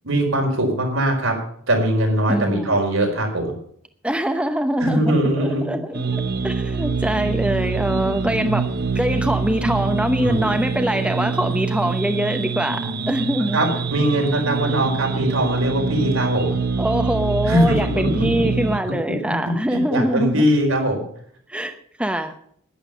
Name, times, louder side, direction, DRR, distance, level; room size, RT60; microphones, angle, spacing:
voice 1, 0.0-1.4 1.7-3.5 4.8-5.8 10.2-10.5 13.5-16.6 17.5-18.5 18.8-21.1, right 1 dB, 80° right, 1 dB, 4.6 m, -21 dB
voice 2, 2.3-2.8 4.0-8.7 8.9-13.6 16.8-20.5 21.5-22.3, equal, 5° right, 7 dB, 0.8 m, -23 dB
sound 1, 5.9-18.8, right 4 dB, 50° right, 0.8 m, -25 dB
11.5 x 10.5 x 6.7 m, 0.63 s
head